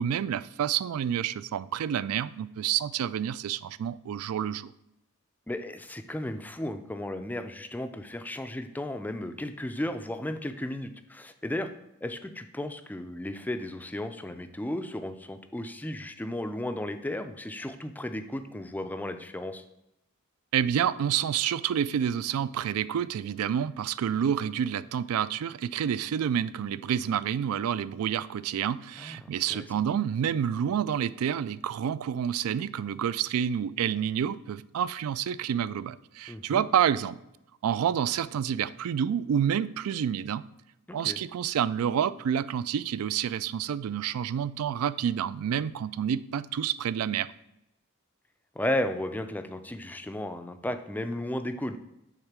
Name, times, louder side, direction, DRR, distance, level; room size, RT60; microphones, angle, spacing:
voice 1, 0.0-4.7 20.5-37.2 37.6-40.4 40.9-47.3, right 9 dB, 75° right, 17 dB, 0.3 m, -28 dB
voice 2, 5.5-11.7 12.0-19.6 29.0-29.2 29.5-29.6 36.3-36.7 40.9-41.2 48.6-51.8, left 1 dB, 10° left, 9 dB, 0.3 m, -34 dB
6.6 x 3.6 x 6.0 m, 0.87 s
head